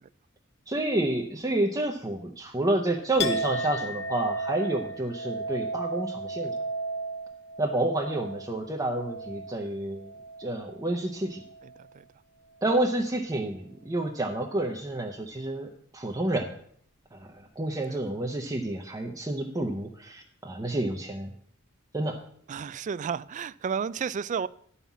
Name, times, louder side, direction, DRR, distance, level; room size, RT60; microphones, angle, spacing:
voice 1, 0.7-6.6 7.6-10.1 10.4-11.4 12.6-16.5 17.1-21.3 21.9-22.2, right 1 dB, 15° right, 1 dB, 0.8 m, -29 dB
Chink clink, 3.2-10.9 11.2-11.9, right 2 dB, 55° left, 0.9 m, -34 dB
voice 2, 11.6-12.0 17.9-18.0 22.5-24.5, right 6 dB, 35° right, 18 dB, 0.3 m, -32 dB
11.0 x 5.6 x 7.1 m, 0.63 s
head